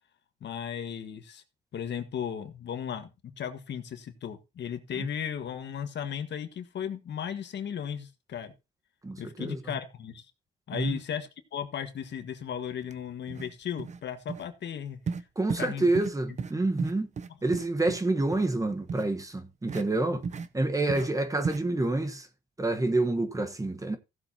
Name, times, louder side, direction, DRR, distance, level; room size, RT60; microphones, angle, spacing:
voice 1, 0.4-1.4 1.7-3.1 3.4-8.5 9.2-10.3 10.7-15.0 15.6-15.9 16.5-16.7 20.1-20.2 21.0-21.1, left 8 dB, 60° left, 1.5 m, -36 dB
voice 2, 9.0-9.6 10.7-11.0 15.4-17.1 17.4-20.2 20.5-22.3 22.6-24.0, right 2 dB, 15° right, 1.2 m, -28 dB
sound 1, 12.8-12.9 13.3-13.5 13.8-14.0 14.3-14.4 15.1-15.2 15.5-15.7 15.9-16.1 16.4-16.5 16.8-18.0 18.3-18.5 18.9-19.0 19.7-19.8 20.2-20.5 20.9-21.0 21.4-21.6, right 5 dB, 35° right, 0.7 m, -34 dB
15.5 x 7.5 x 2.8 m
cardioid pair, 90°, 20 cm